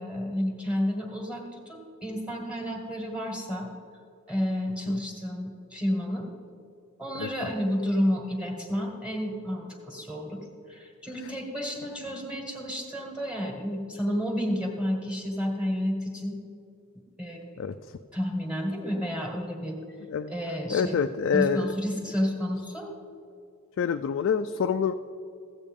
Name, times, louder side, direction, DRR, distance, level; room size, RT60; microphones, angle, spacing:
voice 1, 0.0-3.7 4.3-6.3 7.0-10.4 10.7-16.4 17.2-17.4 18.1-19.8 20.3-21.0 21.3-22.9, equal, 5° right, 1 dB, 1.5 m, -30 dB
voice 2, 20.0-20.3 20.7-21.7 23.8-24.9, left 6 dB, 60° left, 8 dB, 0.3 m, -26 dB
14.5 x 8.5 x 3.6 m, 2.5 s
head